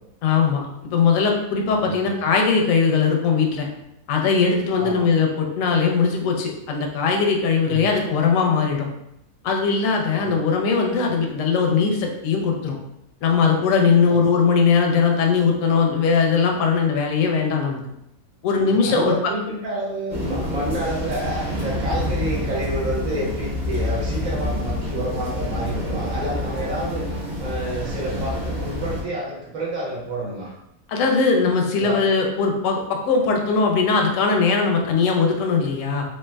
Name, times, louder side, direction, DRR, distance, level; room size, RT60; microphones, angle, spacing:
voice 1, 0.2-3.7 4.1-8.9 9.4-12.8 13.2-17.8 18.4-19.1 30.9-36.0, left 5 dB, 70° left, 2 dB, 0.8 m, -20 dB
voice 2, 1.8-2.1 4.8-5.1 7.6-7.9 10.2-10.4 14.1-14.3 18.7-30.5 31.8-32.2, right 1 dB, 65° right, -4 dB, 1.2 m, -29 dB
sound 1, 20.1-29.0, left 1 dB, 35° right, 0.9 m, -27 dB
3.2 x 2.8 x 2.2 m, 0.82 s
omnidirectional pair, 1.6 m